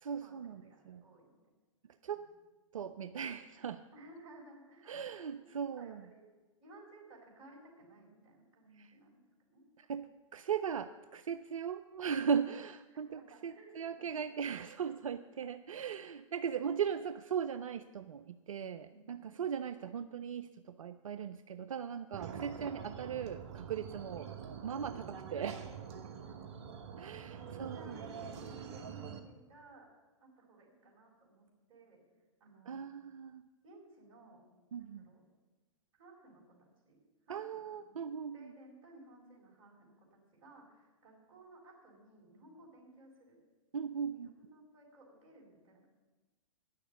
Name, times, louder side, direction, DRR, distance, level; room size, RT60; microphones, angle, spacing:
voice 1, 0.0-1.0 2.0-2.2 2.7-3.8 4.9-6.0 8.8-8.9 9.8-10.1 10.3-24.3 24.6-25.7 27.0-28.0 32.7-33.4 34.7-35.0 37.3-38.5 43.7-44.3, right 7 dB, 75° right, 11 dB, 0.4 m, -38 dB
voice 2, 0.6-1.4 2.1-2.2 3.9-6.3 6.6-9.2 9.5-9.6 12.9-14.3 16.8-17.0 18.9-19.0 25.7-26.7 27.4-29.9 30.2-32.0 32.4-32.9 33.6-34.4 34.8-35.3 36.0-38.0 38.3-43.4 44.1-45.8, right 1 dB, 35° right, -3 dB, 4.5 m, -58 dB
sound 1, 22.1-29.2, right 7 dB, 50° right, 1.1 m, -45 dB
10.0 x 6.6 x 8.0 m, 1.2 s
figure-of-eight pair, 110°, 17 cm